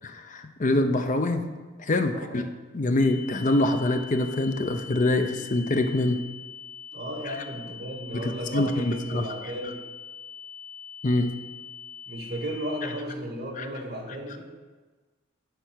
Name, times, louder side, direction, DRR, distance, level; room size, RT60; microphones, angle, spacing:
voice 1, 0.0-1.4 1.8-2.5 2.7-6.2 7.3-7.4 8.1-9.3 11.0-11.3 13.6-13.7, left 2 dB, 40° left, 7 dB, 0.6 m, -25 dB
sound 1, 3.0-13.0, left 6 dB, 10° left, 2.7 m, -43 dB
voice 2, 6.9-9.8 12.1-14.5, right 1 dB, 50° right, -3 dB, 1.8 m, -34 dB
8.1 x 4.6 x 6.3 m, 1.3 s
head